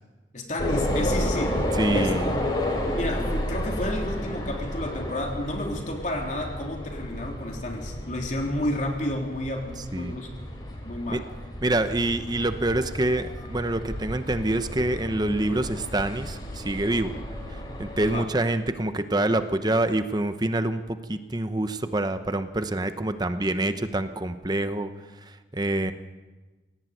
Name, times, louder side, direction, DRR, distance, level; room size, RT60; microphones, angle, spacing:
voice 1, 0.3-1.6 1.9-2.4 2.8-10.3 10.8-11.2 18.0-18.3, left 1 dB, 45° left, 1 dB, 3.4 m, -31 dB
sound 1, 0.6-18.2, left 1 dB, 25° left, 3.8 m, -32 dB
voice 2, 1.7-2.4 9.9-10.1 11.1-11.2 11.6-17.1 17.5-25.9, right 1 dB, 25° right, 10 dB, 0.9 m, -26 dB
18.5 x 17.5 x 9.2 m, 1.3 s
head